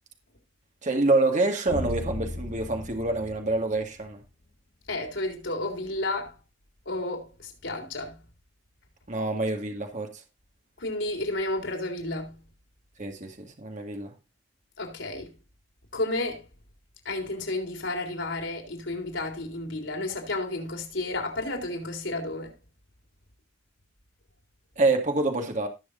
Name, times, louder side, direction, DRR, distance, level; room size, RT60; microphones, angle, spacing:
voice 1, 0.8-4.2 9.1-10.1 13.0-14.1 24.8-25.7, right 2 dB, 40° right, 2.1 m, -26 dB
sound 1, 1.7-4.3, left 1 dB, 50° left, 1.5 m, -36 dB
voice 2, 4.9-6.4 6.9-8.2 10.8-12.4 14.8-15.3 15.9-16.4 17.1-22.5, left 2 dB, 85° left, 3.6 m, -32 dB
19.0 x 6.4 x 2.7 m
head